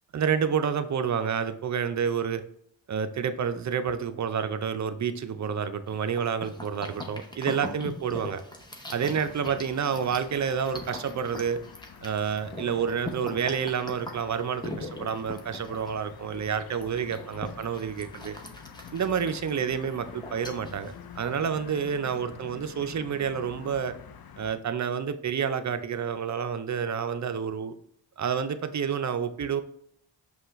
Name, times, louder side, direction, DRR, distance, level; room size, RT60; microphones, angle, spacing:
voice 1, 0.1-2.4 2.9-8.4 8.9-11.6 12.0-18.4 18.9-23.9 24.4-27.7 28.2-29.6, right 7 dB, 40° right, 10 dB, 0.5 m, -29 dB
sound 1, 5.9-21.7, left 2 dB, 10° left, 0.9 m, -42 dB
sound 2, 9.3-24.6, left 7 dB, 50° left, 0.6 m, -48 dB
5.4 x 2.3 x 3.1 m, 0.70 s
cardioid pair, 40°, 49 cm